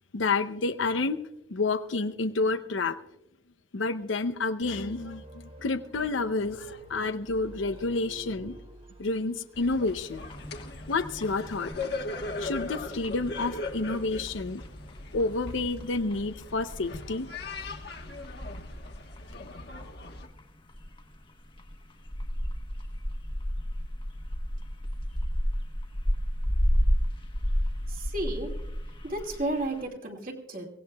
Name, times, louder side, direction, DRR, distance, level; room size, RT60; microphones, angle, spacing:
voice 1, 0.1-1.2 1.5-3.0 3.7-8.6 9.0-10.2 10.9-11.9 12.4-14.6 15.1-17.3, left 3 dB, 90° left, 10 dB, 0.6 m, -29 dB
sound 1, 4.6-9.6, right 2 dB, 30° right, 0.9 m, -48 dB
sound 2, 9.5-20.3, left 2 dB, 55° left, 1.3 m, -39 dB
sound 3, 10.2-29.8, equal, 25° left, 1.1 m, -33 dB
voice 2, 27.9-28.5 29.0-30.7, right 1 dB, 45° right, 1 dB, 2.1 m, -33 dB
23.5 x 17.0 x 2.3 m, 0.86 s
head